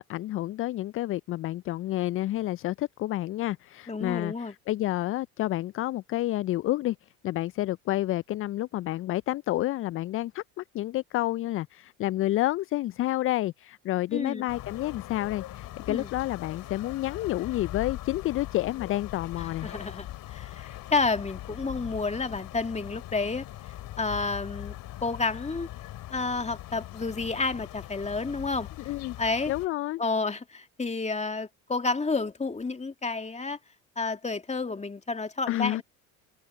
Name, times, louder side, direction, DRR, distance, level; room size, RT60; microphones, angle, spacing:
voice 1, 0.0-19.7 28.9-29.2 29.5-30.0 35.5-35.8, left 15 dB, 35° left, 0.4 m, -29 dB
voice 2, 3.9-4.5 14.1-14.4 15.9-16.1 19.4-23.5 24.0-24.8 25.0-25.7 26.1-28.7 29.2-29.5 30.0-33.6 34.0-35.8, left 3 dB, 15° left, 2.3 m, -30 dB
sound 1, 14.5-29.7, left 14 dB, 55° left, 2.8 m, -41 dB
hypercardioid pair, 70°, 41 cm